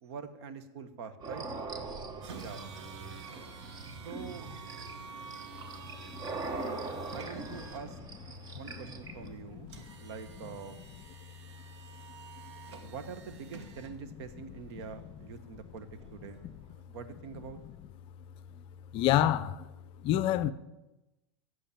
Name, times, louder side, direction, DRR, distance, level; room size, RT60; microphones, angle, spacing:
voice 1, 0.0-1.4 2.3-2.6 4.0-4.5 7.1-8.0 8.5-10.8 12.8-16.4 16.9-17.6, right 6 dB, 70° right, 1.3 m, -44 dB
sound 1, 1.2-9.3, right 3 dB, 25° right, 1.1 m, -42 dB
sound 2, 2.2-16.8, right 5 dB, 85° right, 1.6 m, -50 dB
voice 2, 18.9-19.7 20.0-20.5, left 12 dB, 40° left, 0.5 m, -26 dB
8.6 x 7.7 x 8.7 m
supercardioid pair, 140°, 14 cm